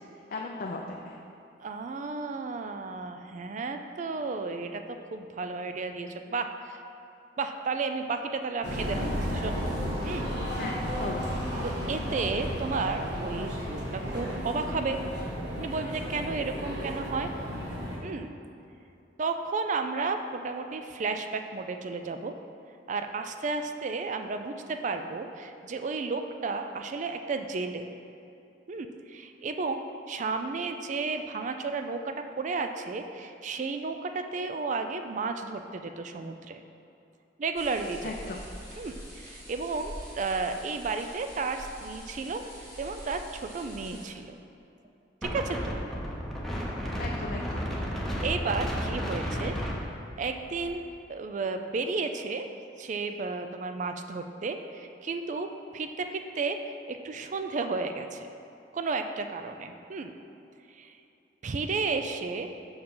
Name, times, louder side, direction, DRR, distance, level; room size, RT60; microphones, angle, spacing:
voice 1, 0.3-1.2 10.6-11.2 38.0-38.4 47.0-47.6, left 3 dB, 50° left, 0 dB, 0.5 m, -36 dB
voice 2, 1.6-4.8 5.1-6.8 7.4-9.7 10.0-10.3 11.6-15.0 15.6-17.3 18.0-18.3 19.2-22.3 22.9-27.9 28.7-29.8 30.1-36.6 37.4-38.3 38.8-42.4 42.8-44.4 45.2-45.8 46.8-47.0 48.2-49.6 50.2-50.8 51.1-52.5 52.8-58.3 58.7-60.1 60.7-60.9 61.4-62.5, right 4 dB, 40° right, 7 dB, 0.4 m, -33 dB
sound 1, 8.6-18.0, equal, 65° right, 1.4 m, -33 dB
sound 2, 37.5-44.1, equal, 15° right, 1.6 m, -45 dB
Wind, 45.2-50.7, equal, ahead, 0.8 m, -33 dB
6.3 x 4.8 x 5.4 m, 2.7 s
head